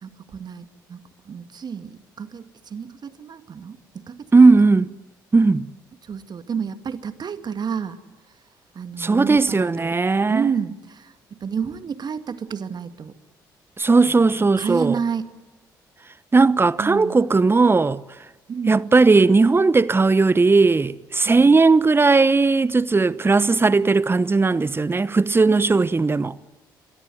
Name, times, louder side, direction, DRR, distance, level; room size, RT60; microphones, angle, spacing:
voice 1, 0.0-4.5 6.0-8.0 8.7-10.0 10.3-13.1 14.1-15.3 16.8-17.2 18.5-18.8 21.3-21.6, right 6 dB, 45° right, 2.1 m, -30 dB
voice 2, 4.3-4.9 5.3-5.7 9.0-10.5 13.8-15.0 16.3-18.0 18.7-26.3, right 3 dB, 20° right, 1.1 m, -17 dB
26.5 x 23.5 x 9.4 m
figure-of-eight pair, 45°, 10 cm